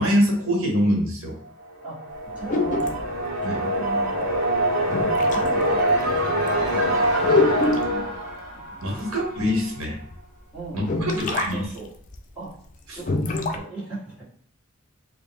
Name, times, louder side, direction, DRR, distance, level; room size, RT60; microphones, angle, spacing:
voice 1, 0.0-1.3 3.4-3.6 8.8-10.0 10.7-11.7 12.9-13.0, equal, 90° right, 0 dB, 1.1 m, -24 dB
voice 2, 1.8-3.0 3.4-4.5 5.3-9.1 10.5-11.9 12.4-12.6 13.0-14.2, right 3 dB, 5° right, -6 dB, 1.6 m, -39 dB
sound 1, 1.8-9.6, right 1 dB, 45° right, 1.0 m, -24 dB
sound 2, 2.5-3.1 4.3-4.4 4.9-5.5 6.1-6.2 6.5-6.6 7.2-8.0 9.4-9.5 10.1-10.2 10.8-11.5 11.8-11.9 12.1-12.2 13.0-13.6, left 3 dB, 40° left, 0.4 m, -24 dB
4.5 x 2.1 x 3.5 m, 0.62 s
head